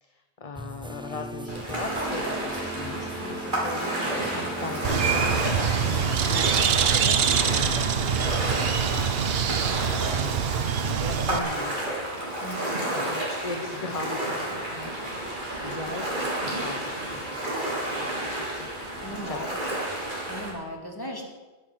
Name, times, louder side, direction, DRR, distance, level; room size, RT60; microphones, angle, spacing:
voice 1, 0.0-3.9 4.6-9.1 9.9-10.5 10.8-12.0 12.9-18.7 19.2-19.8, left 3 dB, 35° left, 5 dB, 1.0 m, -39 dB
sound 1, 0.5-6.4, right 1 dB, 5° right, 0.6 m, -38 dB
Ocean, 1.5-20.5, right 1 dB, 50° right, 4.0 m, -31 dB
Bird, 4.8-11.4, right 7 dB, 70° right, 1.0 m, -25 dB
voice 2, 12.4-12.8 19.0-19.5 20.3-21.3, equal, 20° left, 0 dB, 2.7 m, -37 dB
13.0 x 10.5 x 7.6 m, 1.2 s
omnidirectional pair, 1.1 m